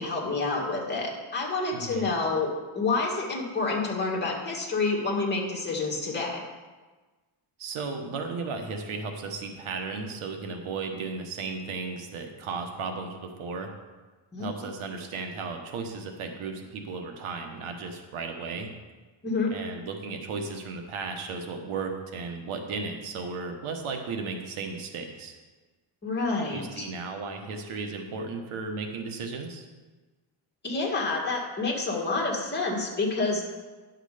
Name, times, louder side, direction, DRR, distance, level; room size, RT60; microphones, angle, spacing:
voice 1, 0.0-6.4 14.3-14.5 19.2-19.5 26.0-26.9 30.6-33.4, left 3 dB, 20° left, -2 dB, 1.9 m, -28 dB
voice 2, 1.7-2.1 7.6-13.7 14.4-18.7 19.5-25.3 26.5-29.7, right 4 dB, 85° right, 4 dB, 1.3 m, -35 dB
10.5 x 6.5 x 5.0 m, 1.3 s
cardioid pair, 160°, 48 cm